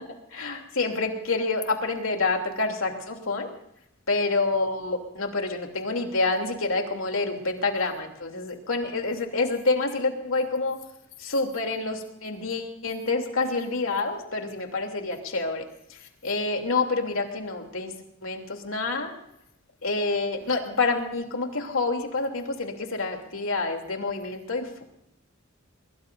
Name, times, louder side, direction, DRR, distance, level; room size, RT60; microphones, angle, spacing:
voice 1, 0.3-3.5 4.1-10.8 11.2-15.6 16.2-17.9 18.2-19.1 19.8-24.7, left 3 dB, 75° left, 3 dB, 3.0 m, -27 dB
23.0 x 22.5 x 2.6 m, 0.77 s
head